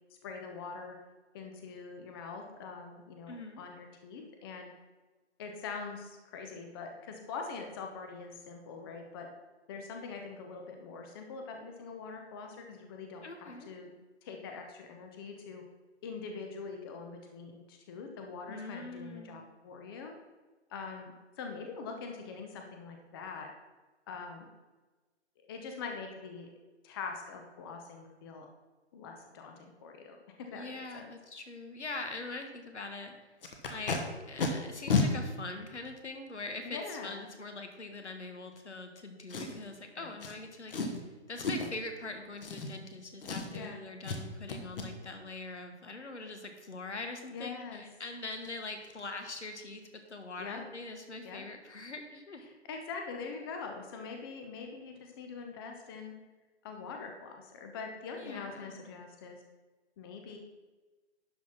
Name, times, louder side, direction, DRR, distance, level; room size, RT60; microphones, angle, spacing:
voice 1, 0.1-1.0 1.3-4.7 5.4-9.3 9.7-13.9 14.2-15.6 16.0-20.1 20.7-23.5 24.1-24.5 25.4-26.5 26.8-28.5 28.9-31.1 36.6-37.2 40.0-40.1 43.5-43.8 47.3-47.8 50.4-50.6 51.2-51.4 52.4-56.2 56.6-59.4 60.0-60.4, left 4 dB, 20° left, 3 dB, 0.7 m, -43 dB
voice 2, 3.3-3.6 13.2-13.7 18.5-19.4 30.5-33.1 33.7-34.0 34.3-41.0 41.3-52.4 58.2-58.9, left 3 dB, 80° left, 5 dB, 1.6 m, -43 dB
Packing tape duct tape, 33.4-34.0 34.4-34.5 34.9-35.1 35.9-36.0 39.3-39.7 40.2-40.3 40.7-41.0 41.4-41.8 42.4-42.9 43.2-43.7 44.0-44.2 44.5-44.9 47.9-48.0 48.3-48.5 48.8-49.0 49.3-49.5 49.8-49.9, left 4 dB, 50° left, 1.6 m, -32 dB
11.0 x 4.2 x 5.8 m, 1.3 s
figure-of-eight pair, 140°, 34 cm